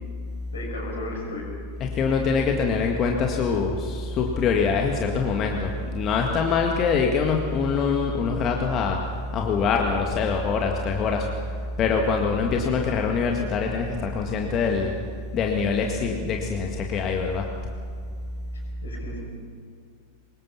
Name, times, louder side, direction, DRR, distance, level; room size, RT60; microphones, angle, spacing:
voice 1, 0.5-1.5 18.8-19.2, left 2 dB, 70° left, 0 dB, 6.3 m, -34 dB
voice 2, 1.8-11.3 11.8-15.0 15.3-17.5, left 5 dB, 30° left, 2 dB, 1.8 m, -24 dB
24.5 x 21.5 x 5.8 m, 2.2 s
figure-of-eight pair, 90°, 0 cm